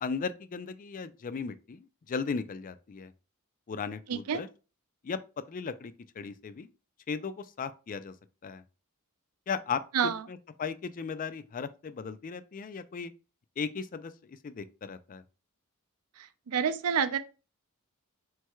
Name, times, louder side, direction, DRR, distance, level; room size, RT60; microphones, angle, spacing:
voice 1, 0.0-3.1 3.7-4.5 5.0-6.7 7.1-8.1 8.4-8.6 9.5-13.1 13.6-15.2, left 5 dB, 40° left, 0.4 m, -36 dB
voice 2, 4.1-4.4 9.9-10.2 16.5-17.2, right 7 dB, 85° right, 0.5 m, -27 dB
4.5 x 4.4 x 2.3 m
head